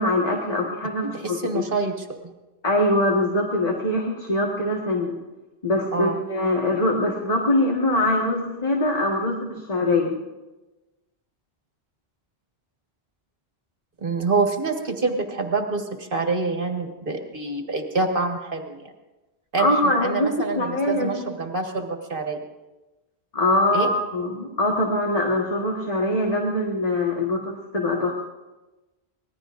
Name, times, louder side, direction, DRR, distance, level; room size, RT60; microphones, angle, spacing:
voice 1, 0.0-1.6 2.6-5.2 5.6-10.2 19.6-21.3 23.3-28.1, left 1 dB, 35° left, -2 dB, 1.8 m, -23 dB
voice 2, 1.0-2.1 5.9-6.2 14.0-18.9 19.5-22.4 23.7-23.9, right 3 dB, 55° right, 3 dB, 1.8 m, -26 dB
25.5 x 19.5 x 2.6 m, 1.1 s
omnidirectional pair, 1.1 m